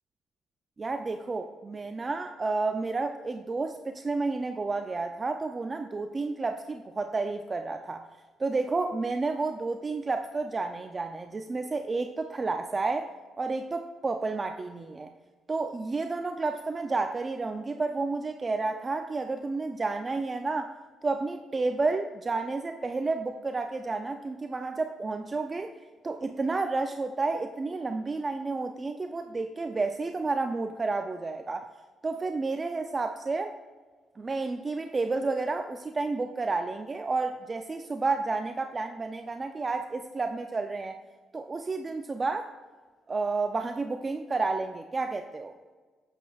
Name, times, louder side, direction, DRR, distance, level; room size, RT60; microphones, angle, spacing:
voice 1, 0.8-8.0 8.4-13.1 13.4-15.1 15.5-20.7 21.0-25.7 26.0-31.7 32.0-33.5 34.2-41.0 41.3-42.5 43.1-45.5, right 3 dB, 30° right, 6 dB, 0.5 m, -31 dB
9.9 x 8.2 x 2.4 m, 1.4 s
cardioid pair, 90°, 0 cm